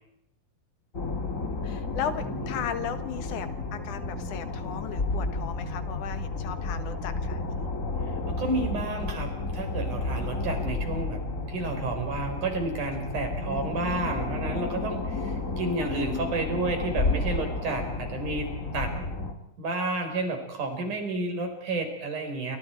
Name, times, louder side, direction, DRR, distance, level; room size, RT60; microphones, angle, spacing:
sound 1, 0.9-19.3, left 3 dB, 25° left, 2.5 m, -32 dB
voice 1, 1.2-7.7, left 8 dB, 80° left, 10 dB, 2.9 m, -36 dB
voice 2, 8.3-11.2 11.5-18.9 19.6-22.6, right 3 dB, 80° right, 5 dB, 6.0 m, -31 dB
29.0 x 26.0 x 4.6 m, 0.81 s
omnidirectional pair, 3.5 m